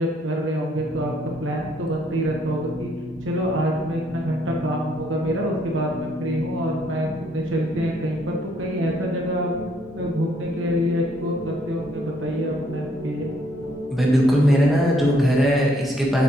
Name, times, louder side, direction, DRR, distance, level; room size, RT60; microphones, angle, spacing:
voice 1, 0.0-2.9 3.2-9.5 9.9-13.3, equal, 75° right, -1 dB, 1.3 m, -26 dB
sound 1, 0.7-15.2, left 1 dB, 15° left, 1.4 m, -34 dB
voice 2, 13.9-16.2, equal, ahead, -4 dB, 1.5 m, -18 dB
7.4 x 7.3 x 3.1 m, 1.5 s
head